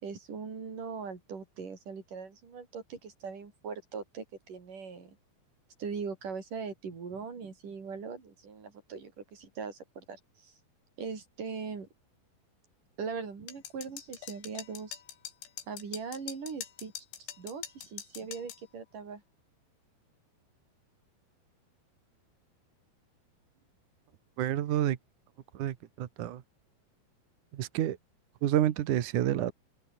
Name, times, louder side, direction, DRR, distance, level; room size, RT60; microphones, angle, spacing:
voice 1, 0.0-5.2 5.8-10.5 11.0-11.9 13.0-15.0 15.7-16.9 17.2-19.2, right 5 dB, 50° right, 6.1 m, -40 dB
sound 1, 13.5-18.6, left 10 dB, 85° left, 4.8 m, -44 dB
voice 2, 24.4-25.0 25.5-26.4 27.5-28.0 28.4-29.5, right 12 dB, 65° right, 2.2 m, -29 dB
open air
omnidirectional pair, 5.1 m